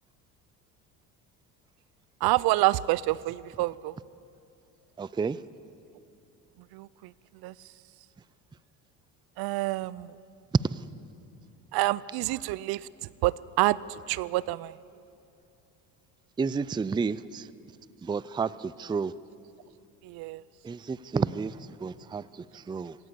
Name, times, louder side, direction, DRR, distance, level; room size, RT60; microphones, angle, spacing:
voice 1, 2.2-3.9 6.7-6.9 7.4-7.5 9.4-10.1 11.7-12.8 13.2-13.8 14.1-14.7 20.0-20.4, right 18 dB, 60° right, 21 dB, 0.6 m, -27 dB
voice 2, 5.0-5.4 16.4-17.4 18.0-19.1 20.6-21.5 21.8-22.2 22.7-22.9, right 5 dB, 10° right, 18 dB, 0.4 m, -30 dB
25.5 x 17.5 x 7.0 m, 2.6 s
hypercardioid pair, 70°, 41 cm